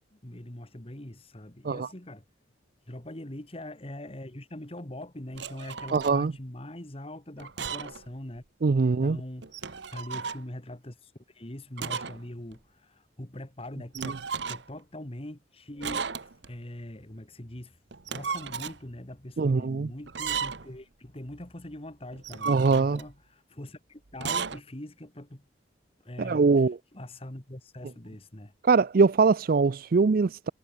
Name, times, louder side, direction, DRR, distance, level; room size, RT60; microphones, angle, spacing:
voice 1, 0.1-2.3 2.9-8.4 8.8-14.2 14.5-17.8 18.1-25.5 26.0-28.5, left 1 dB, 30° left, 2.0 m, -42 dB
sound 1, 5.3-6.2 7.4-8.1 8.4-8.5 9.4-10.4 11.8-12.2 12.5-12.6 13.9-14.8 15.8-16.5 17.9-18.8 20.1-20.8 22.1-23.1 24.1-24.6, right 6 dB, 65° right, 1.1 m, -34 dB
voice 2, 5.9-6.3 8.6-9.2 14.0-14.1 19.4-19.9 22.5-23.0 26.2-26.8 28.7-30.5, right 4 dB, 50° right, 0.4 m, -22 dB
head